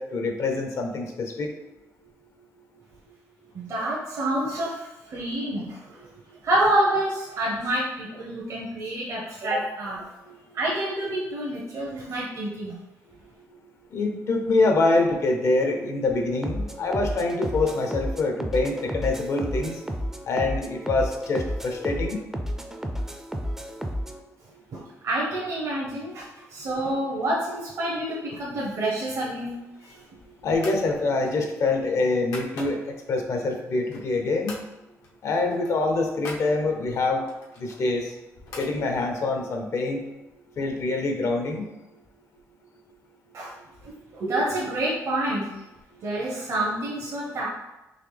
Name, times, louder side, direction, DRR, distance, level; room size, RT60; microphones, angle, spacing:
voice 1, 0.0-1.5 13.9-19.8 20.3-22.2 26.7-26.8 30.4-34.6 35.2-37.2 37.6-38.1 38.6-40.0 40.6-41.6, left 3 dB, 60° left, 3 dB, 0.7 m, -25 dB
voice 2, 3.5-6.0 6.4-10.1 10.5-12.8 24.7-29.6 43.3-43.5 43.8-45.5 46.0-47.5, right 1 dB, 60° right, -4 dB, 0.8 m, -28 dB
sound 1, 16.4-24.2, equal, 5° right, 0.4 m, -32 dB
sound 2, 29.6-30.1 30.6-30.9 31.2-33.0 33.5-34.2 34.5-34.7 35.0-35.2 35.4-36.5 37.3-38.7, left 2 dB, 85° left, 0.9 m, -42 dB
4.0 x 2.9 x 3.3 m, 1.0 s
cardioid pair, 95°, 6 cm